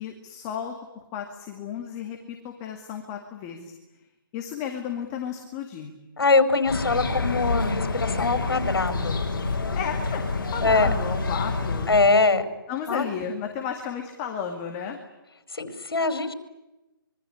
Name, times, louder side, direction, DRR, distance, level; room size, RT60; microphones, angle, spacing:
voice 1, 0.0-3.7 4.3-5.9 9.7-10.2 10.5-11.9 12.7-15.0, left 8 dB, 15° left, 3 dB, 2.2 m, -33 dB
voice 2, 6.2-9.2 10.6-10.9 11.9-12.4 12.9-13.0 15.5-16.3, left 3 dB, 85° left, 9 dB, 4.8 m, -22 dB
sound 1, 6.7-12.1, left 3 dB, 60° left, 7.0 m, -28 dB
25.5 x 23.5 x 9.9 m, 1.0 s
hypercardioid pair, 170°, 12 cm